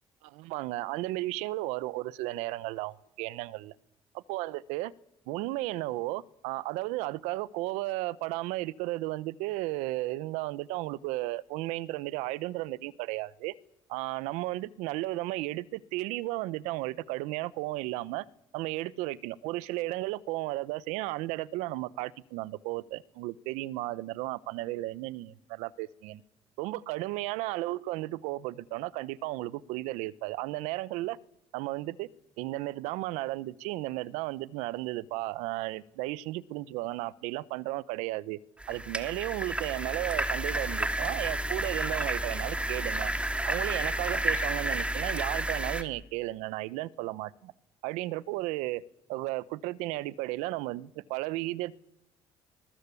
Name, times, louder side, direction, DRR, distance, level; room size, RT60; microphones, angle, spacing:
voice 1, 0.2-3.7 4.3-4.9 5.3-13.5 13.9-18.2 18.5-26.2 26.6-31.2 31.5-32.1 32.4-38.4 38.7-43.1 43.4-47.5 47.8-48.8 49.1-51.8, right 18 dB, 85° right, 0.9 m, -34 dB
sound 1, 38.6-45.8, right 1 dB, 10° right, 2.6 m, -31 dB
23.0 x 20.5 x 8.5 m
supercardioid pair, 70°, 12 cm